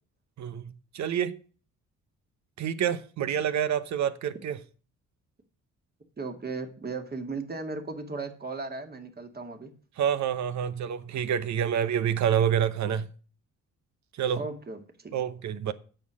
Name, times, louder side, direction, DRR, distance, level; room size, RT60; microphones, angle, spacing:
voice 1, 0.4-1.4 2.6-4.6 10.0-13.1 14.1-14.4 15.1-15.7, right 9 dB, 70° right, 1.0 m, -27 dB
voice 2, 6.2-9.7 14.4-15.1, right 3 dB, 30° right, 2.1 m, -36 dB
9.1 x 6.8 x 6.3 m
cardioid pair, 90°, 30 cm